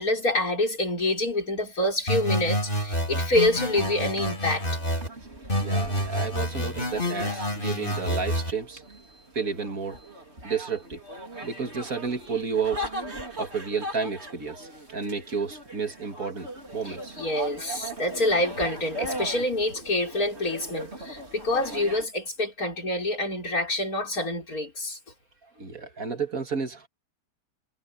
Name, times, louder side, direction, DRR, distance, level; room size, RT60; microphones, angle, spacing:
voice 1, 0.0-4.6 16.9-25.0, left 1 dB, 60° left, 5.8 m, -27 dB
sound 1, 2.1-5.1 5.5-8.5, equal, 30° left, 4.0 m, -28 dB
sound 2, 3.3-22.1, right 1 dB, 40° right, 4.9 m, -40 dB
voice 2, 5.6-10.1 10.4-11.0 11.4-12.9 13.4-17.2 25.6-26.9, right 5 dB, 60° right, 2.4 m, -31 dB
omnidirectional pair, 1.7 m